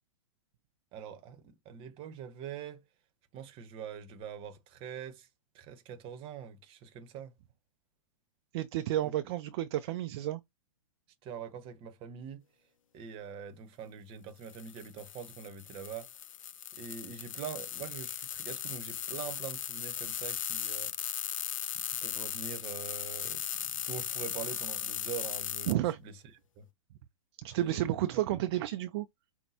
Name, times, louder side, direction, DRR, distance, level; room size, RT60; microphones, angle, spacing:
voice 1, 0.9-2.8 3.3-5.3 5.5-7.3 9.0-9.1 11.2-12.4 12.9-16.1 16.8-20.9 21.7-26.1 26.6-26.7 27.6-28.2, right 7 dB, 30° right, 0.9 m, -44 dB
voice 2, 8.5-10.4 25.7-26.0 27.4-29.1, right 13 dB, 45° right, 0.4 m, -31 dB
sound 1, 14.4-25.7, left 10 dB, 70° left, 0.5 m, -37 dB
5.4 x 2.2 x 2.7 m
hypercardioid pair, 115°, 17 cm